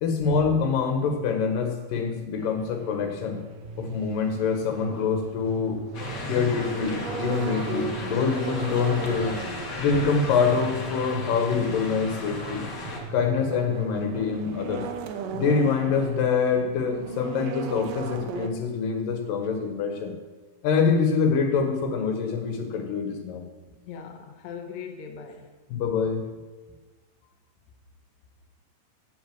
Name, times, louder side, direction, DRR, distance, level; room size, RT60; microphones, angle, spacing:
voice 1, 0.0-3.4 3.8-5.8 6.2-9.4 9.8-12.6 13.1-14.9 15.3-20.1 20.6-23.4 25.7-26.2, left 5 dB, 80° left, 4 dB, 3.0 m, -25 dB
sound 1, 2.4-18.5, right 6 dB, 75° right, 2.4 m, -38 dB
sound 2, 5.9-13.0, left 1 dB, 40° left, 1.9 m, -35 dB
voice 2, 23.9-25.5, left 6 dB, 65° left, 3 dB, 2.1 m, -39 dB
8.3 x 7.7 x 7.7 m, 1.3 s
omnidirectional pair, 3.9 m